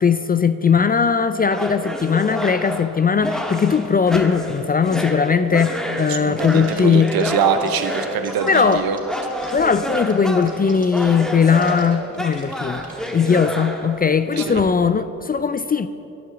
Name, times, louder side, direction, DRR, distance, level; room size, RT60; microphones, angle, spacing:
voice 1, 0.0-7.1 8.5-8.8 9.5-12.8 13.1-15.9, left 6 dB, 25° left, 12 dB, 0.4 m, -19 dB
sound 1, 1.5-14.6, equal, ahead, 1.5 m, -29 dB
voice 2, 6.1-9.0 14.3-14.6, right 6 dB, 65° right, 9 dB, 0.9 m, -23 dB
sound 2, 6.4-13.1, right 1 dB, 20° right, 2.5 m, -42 dB
11.5 x 5.5 x 7.1 m, 2.9 s
supercardioid pair, 50°, 38 cm